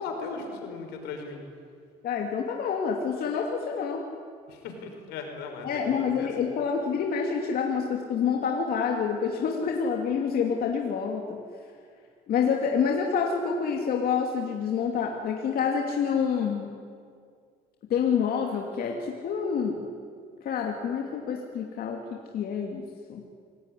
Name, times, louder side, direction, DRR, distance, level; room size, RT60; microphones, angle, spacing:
voice 1, 0.0-1.4 4.5-6.3, left 4 dB, 90° left, 4 dB, 5.4 m, -37 dB
voice 2, 2.0-4.0 5.6-11.4 12.3-16.7 17.9-19.8 20.4-23.2, left 6 dB, 60° left, 1 dB, 2.7 m, -27 dB
26.5 x 18.0 x 10.0 m, 2.1 s
cardioid pair, 110°, 17 cm